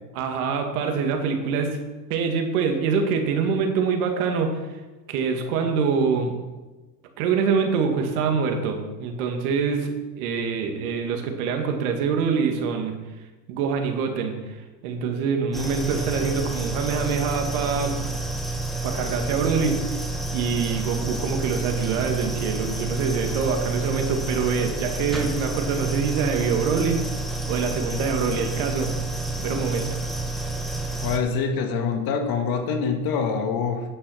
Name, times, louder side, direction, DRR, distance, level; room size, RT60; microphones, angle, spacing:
voice 1, 0.1-1.8 2.1-4.6 5.1-6.4 7.2-13.0 13.5-18.0 18.8-20.0 20.3-27.0 27.5-28.9 29.4-30.0, right 5 dB, 70° right, 4 dB, 2.2 m, -25 dB
sound 1, 15.5-31.2, right 2 dB, ahead, 1.4 m, -29 dB
voice 2, 31.0-33.8, left 5 dB, 50° left, 4 dB, 2.0 m, -25 dB
9.8 x 7.6 x 6.5 m, 1.2 s
supercardioid pair, 105°, 45 cm